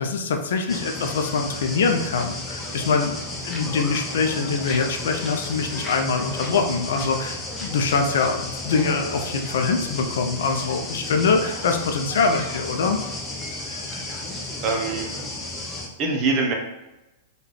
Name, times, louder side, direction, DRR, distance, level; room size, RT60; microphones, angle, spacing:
voice 1, 0.0-3.2 3.4-13.0, left 4 dB, 65° left, 4 dB, 0.4 m, -24 dB
sound 1, 0.7-15.9, left 2 dB, 15° left, 0.7 m, -33 dB
voice 2, 14.6-15.1 16.0-16.5, right 3 dB, 35° right, 1 dB, 0.8 m, -23 dB
3.6 x 2.3 x 3.2 m, 1.0 s
figure-of-eight pair, 100°, 0 cm